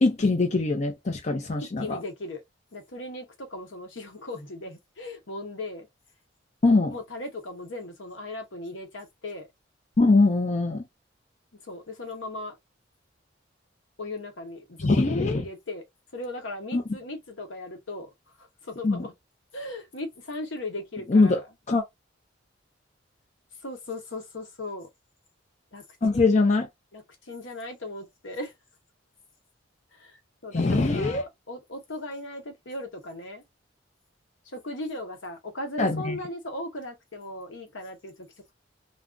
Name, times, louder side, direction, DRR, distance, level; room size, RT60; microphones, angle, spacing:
voice 1, 0.0-2.0 6.6-6.9 10.0-10.8 14.8-15.4 16.7-16.8 18.8-19.0 21.1-21.4 21.7-21.8 26.0-26.7 30.5-31.2 35.8-36.2, left 3 dB, 40° left, 0.5 m, -22 dB
voice 2, 1.6-2.4 2.7-5.9 6.9-9.5 11.5-12.6 14.0-15.8 16.1-18.1 18.4-19.1 19.5-21.4 23.6-24.9 25.7-25.8 26.1-26.3 26.9-28.5 29.9-33.4 34.5-38.3, left 2 dB, 80° left, 1.0 m, -38 dB
2.4 x 2.1 x 3.7 m
head